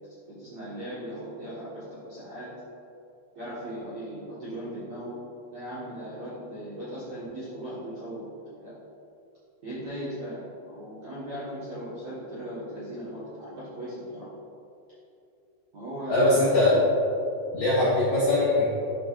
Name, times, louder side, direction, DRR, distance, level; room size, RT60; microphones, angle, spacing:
voice 1, 0.3-2.5 3.3-5.2 5.5-8.7 9.6-14.3 15.7-16.9, right 1 dB, 70° right, -11 dB, 1.5 m, -38 dB
voice 2, 16.1-16.7 17.5-18.7, left 2 dB, 75° left, -10 dB, 1.7 m, -21 dB
12.0 x 5.8 x 2.5 m, 2.6 s
omnidirectional pair, 5.7 m